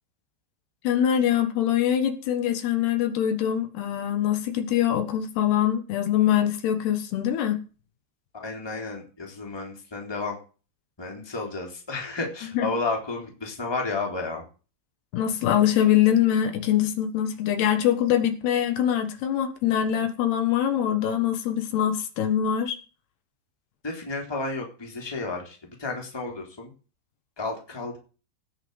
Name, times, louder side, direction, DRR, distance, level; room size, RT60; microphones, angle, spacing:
voice 1, 0.9-7.6 12.6-12.7 15.1-22.8, left 10 dB, 75° left, 7 dB, 3.5 m, -23 dB
voice 2, 8.3-10.4 11.0-14.4 23.8-26.7 27.4-28.0, left 3 dB, 5° left, 1 dB, 2.6 m, -32 dB
17.0 x 5.8 x 7.8 m, 0.36 s
omnidirectional pair, 4.7 m